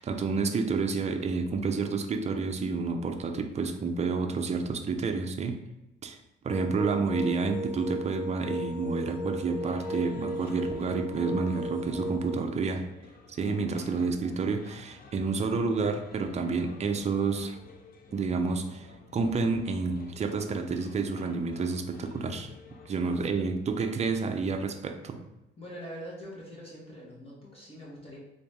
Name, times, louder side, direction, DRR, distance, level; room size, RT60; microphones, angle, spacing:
voice 1, 0.0-5.6 6.0-6.2 6.4-12.9 13.3-17.6 18.1-22.5 22.9-25.2, right 4 dB, 35° right, 5 dB, 0.5 m, -29 dB
sound 1, 6.5-12.4, equal, 5° left, 1.4 m, -36 dB
sound 2, 9.5-23.5, left 3 dB, 50° left, 0.6 m, -51 dB
voice 2, 25.6-28.2, equal, 30° left, -5 dB, 1.3 m, -43 dB
3.9 x 2.6 x 3.5 m, 0.94 s
cardioid pair, 90°, 20 cm